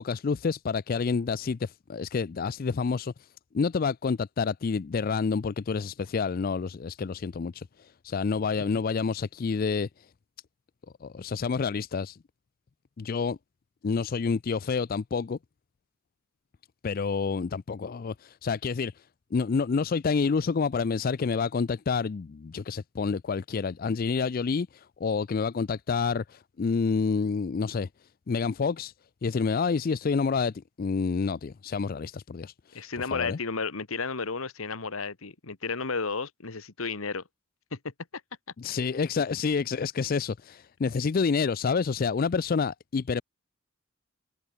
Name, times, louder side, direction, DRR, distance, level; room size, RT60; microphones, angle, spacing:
voice 1, 0.0-3.1 3.5-9.9 11.0-12.2 13.0-13.4 13.8-15.4 16.8-18.9 19.3-27.9 28.3-28.9 29.2-32.8 33.1-33.4 38.6-43.2, left 5 dB, 45° left, 0.4 m, -28 dB
voice 2, 32.7-37.2 37.7-37.9, left 4 dB, 80° left, 1.5 m, -33 dB
head